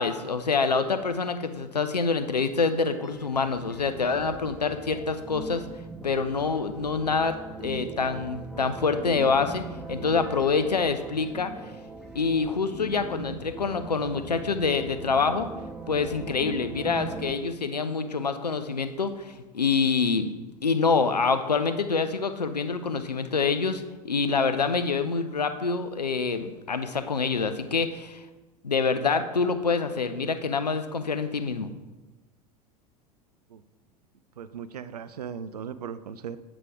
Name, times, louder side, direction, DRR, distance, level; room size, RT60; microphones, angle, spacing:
voice 1, 0.0-5.6 6.0-11.5 12.1-15.5 15.9-20.3 20.6-28.2 28.6-31.7, left 4 dB, 85° left, 9 dB, 0.5 m, -26 dB
sound 1, 2.8-17.3, right 3 dB, 5° right, 0.5 m, -41 dB
voice 2, 34.4-36.4, right 7 dB, 75° right, 13 dB, 0.4 m, -37 dB
8.1 x 5.0 x 3.6 m, 1.2 s
figure-of-eight pair, 80°, 20 cm